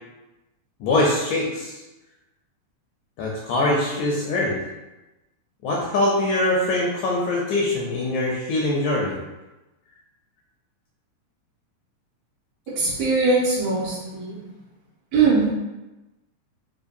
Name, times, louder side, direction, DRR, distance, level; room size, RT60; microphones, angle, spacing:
voice 1, 0.8-1.7 3.2-4.6 5.6-9.1, left 2 dB, 80° left, -3 dB, 1.7 m, -23 dB
voice 2, 12.8-14.4 15.1-15.5, right 4 dB, 70° right, -6 dB, 2.0 m, -21 dB
5.1 x 2.5 x 2.6 m, 1.1 s
omnidirectional pair, 3.6 m